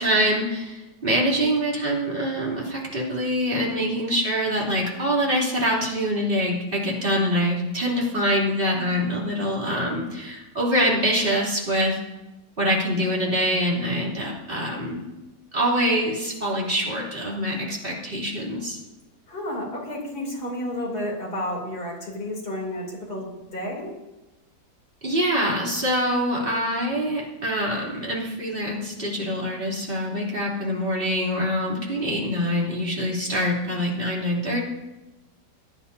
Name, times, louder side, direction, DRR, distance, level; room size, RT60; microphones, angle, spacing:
voice 1, 0.0-12.0 12.6-15.0 15.5-18.8 25.0-34.6, equal, 30° right, -4 dB, 3.3 m, -25 dB
voice 2, 19.3-23.9, left 1 dB, 65° left, -2 dB, 3.8 m, -31 dB
20.0 x 10.0 x 2.8 m, 1.0 s
omnidirectional pair, 1.8 m